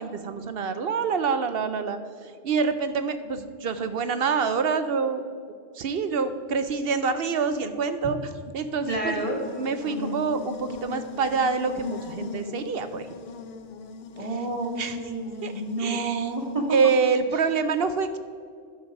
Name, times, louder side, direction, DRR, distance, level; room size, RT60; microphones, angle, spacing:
voice 1, 0.0-2.0 2.4-5.3 5.7-8.2 8.5-9.1 9.6-13.1 14.8-14.9 15.4-15.5 15.8-16.3 16.7-18.2, right 5 dB, 65° right, 10 dB, 0.8 m, -26 dB
Buzz, 8.8-16.9, left 5 dB, 65° left, 0.9 m, -40 dB
voice 2, 8.9-9.4 9.8-10.2 14.2-16.8 17.3-17.4, right 2 dB, 30° right, -2 dB, 1.3 m, -30 dB
10.0 x 6.2 x 5.2 m, 2.1 s
omnidirectional pair, 1.1 m